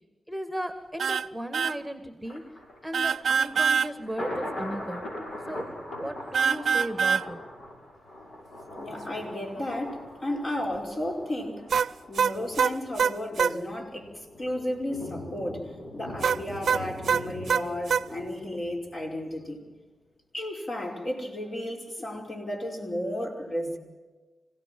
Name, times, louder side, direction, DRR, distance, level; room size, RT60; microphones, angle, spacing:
voice 1, 0.3-2.4 2.8-5.0 5.5-7.4, equal, ahead, 7 dB, 1.8 m, -36 dB
sound 1, 1.0-1.3 1.5-1.8 2.9-3.9 6.3-7.3 11.7-13.6 16.2-18.1, right 6 dB, 85° right, 0.6 m, -24 dB
Thunder, 2.2-19.4 19.7-19.8, left 1 dB, 75° left, 6.3 m, -41 dB
voice 2, 8.8-11.7 12.1-19.7 20.3-23.8, left 1 dB, 45° left, 1 dB, 5.4 m, -33 dB
26.5 x 17.0 x 7.7 m, 1.3 s
cardioid pair, 80°, 0 cm